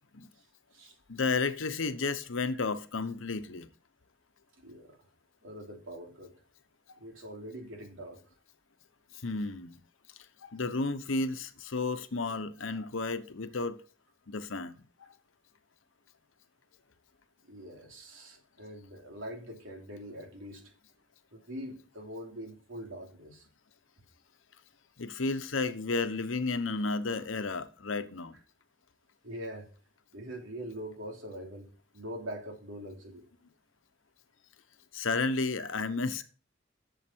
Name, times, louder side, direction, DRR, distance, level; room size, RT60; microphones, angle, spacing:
voice 1, 1.1-3.7 9.2-9.8 10.4-13.8 14.3-14.8 25.0-28.4 34.9-36.2, left 3 dB, 85° left, 0.9 m, -32 dB
voice 2, 4.6-5.0 5.4-6.3 7.0-8.2 17.5-20.6 21.3-23.5 29.2-29.7 30.1-33.3 35.6-35.7, equal, 85° right, 3.0 m, -43 dB
11.0 x 7.3 x 4.5 m
head